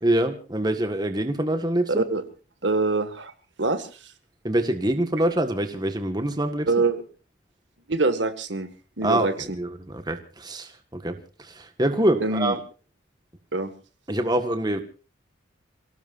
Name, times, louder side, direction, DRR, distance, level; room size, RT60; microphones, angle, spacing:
voice 1, 0.0-2.0 4.4-6.7 9.0-9.3 9.5-12.6 14.1-14.8, right 1 dB, 20° right, 7 dB, 1.6 m, -25 dB
voice 2, 1.9-2.2 2.6-3.3 3.6-3.9 6.7-7.0 7.9-8.7 9.0-9.3 12.2-12.6 13.5-13.7, right 3 dB, 65° right, 10 dB, 1.9 m, -24 dB
28.5 x 18.0 x 2.6 m, 0.36 s
head